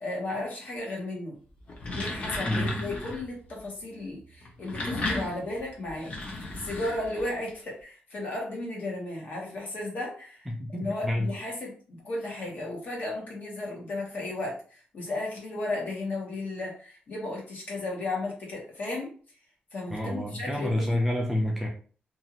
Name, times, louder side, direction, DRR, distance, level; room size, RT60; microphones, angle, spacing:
voice 1, 0.0-1.4 1.9-10.5 10.7-19.1 19.7-21.0, left 2 dB, 50° left, -2 dB, 1.2 m, -34 dB
sound 1, 1.6-3.3 4.4-7.5, left 2 dB, 35° left, 0.7 m, -34 dB
voice 2, 2.5-2.8 10.5-11.3 19.9-21.7, left 1 dB, 5° right, -1 dB, 0.5 m, -28 dB
2.6 x 2.4 x 2.9 m, 0.41 s
wide cardioid pair, 170°, 4 cm